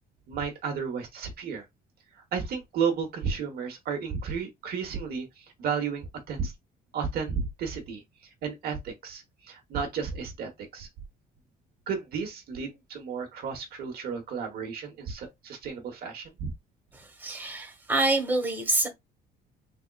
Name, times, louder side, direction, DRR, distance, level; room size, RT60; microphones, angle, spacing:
voice 1, 0.3-1.6 2.3-6.5 6.9-8.0 8.4-10.9 11.9-16.5, right 6 dB, 65° right, 1.2 m, -33 dB
voice 2, 16.9-18.9, right 2 dB, 10° right, 1.2 m, -27 dB
3.6 x 3.5 x 2.3 m
cardioid pair, 110°, 17 cm